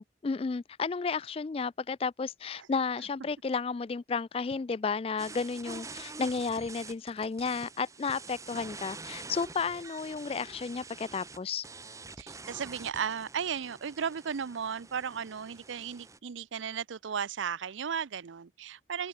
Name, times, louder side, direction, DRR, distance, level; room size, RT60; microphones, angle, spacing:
voice 1, 0.0-11.6, left 5 dB, 30° left, 0.3 m, -33 dB
sound 1, 5.2-16.2, right 3 dB, 15° right, 1.4 m, -46 dB
voice 2, 12.2-19.1, right 7 dB, 80° right, 0.5 m, -35 dB
open air
head